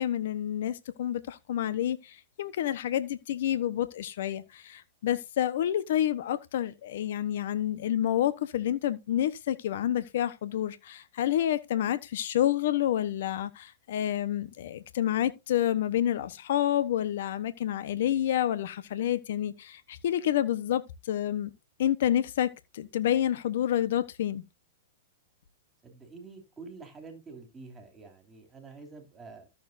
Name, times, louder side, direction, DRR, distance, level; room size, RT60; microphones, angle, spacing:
voice 1, 0.0-2.0 2.4-20.8 21.1-21.5 21.8-24.4, left 11 dB, 65° left, 1.1 m, -29 dB
voice 2, 25.8-29.5, right 4 dB, 15° right, 3.0 m, -47 dB
13.5 x 7.1 x 2.7 m
hypercardioid pair, 135°, 0 cm